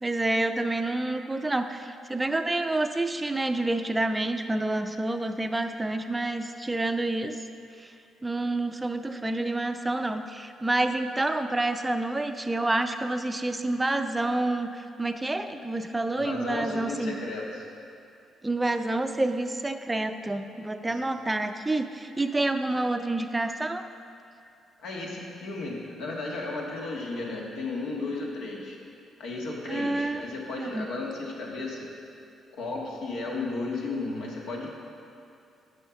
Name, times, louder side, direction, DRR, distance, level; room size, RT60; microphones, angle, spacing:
voice 1, 0.0-7.4 7.8-7.9 8.2-17.2 18.4-23.8 29.7-30.3 30.5-30.9, right 2 dB, 15° right, 8 dB, 0.4 m, -28 dB
voice 2, 16.1-17.6 20.8-21.0 24.8-28.8 29.2-31.9 32.5-34.7, left 3 dB, 85° left, -2 dB, 1.4 m, -34 dB
7.9 x 5.6 x 5.7 m, 2.6 s
cardioid pair, 90°, 0 cm